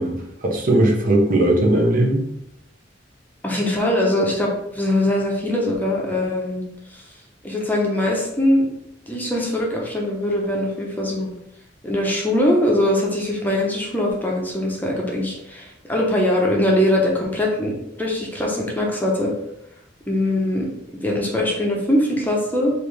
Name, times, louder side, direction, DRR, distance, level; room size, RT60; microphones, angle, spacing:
voice 1, 0.0-2.2, right 1 dB, 50° right, 0 dB, 0.9 m, -18 dB
voice 2, 3.4-6.6 6.9-7.0 7.4-8.7 9.1-11.3 11.8-17.7 18.0-19.3 20.1-20.7 21.0-22.7, left 1 dB, 10° left, -2 dB, 0.7 m, -21 dB
5.1 x 2.7 x 3.3 m, 0.78 s
head